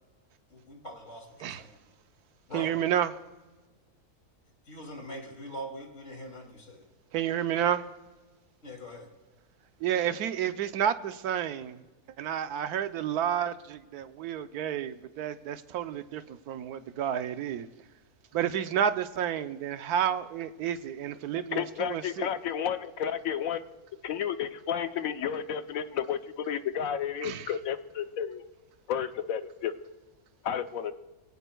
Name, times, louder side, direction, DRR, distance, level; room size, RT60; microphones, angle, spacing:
voice 1, 0.5-1.8 2.5-2.7 4.6-6.8 8.6-9.1, equal, 50° left, 3.1 m, -42 dB
voice 2, 2.5-3.1 7.1-7.8 9.8-11.8 12.2-17.7 18.3-22.3 27.2-27.5, right 9 dB, 80° right, 1.2 m, -30 dB
voice 3, 21.5-23.6 24.0-28.4 28.9-29.7 30.4-30.9, left 8 dB, 70° left, 1.1 m, -32 dB
23.5 x 17.0 x 2.3 m
omnidirectional pair, 1.6 m